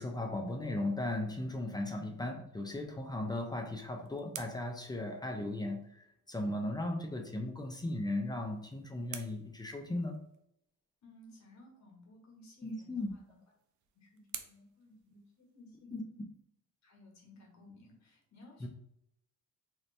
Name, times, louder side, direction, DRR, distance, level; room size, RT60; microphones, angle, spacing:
voice 1, 0.0-10.2 12.6-13.1 15.9-16.0 18.6-18.7, left 1 dB, 15° left, 2 dB, 0.5 m, -37 dB
sound 1, 3.4-5.9 8.0-10.5 12.7-15.8, right 10 dB, 75° right, 0.5 m, -52 dB
voice 2, 11.0-13.4 13.9-16.0 16.8-18.7, left 2 dB, 65° left, -1 dB, 1.3 m, -57 dB
2.8 x 2.6 x 3.2 m, 0.76 s
cardioid pair, 90°, 30 cm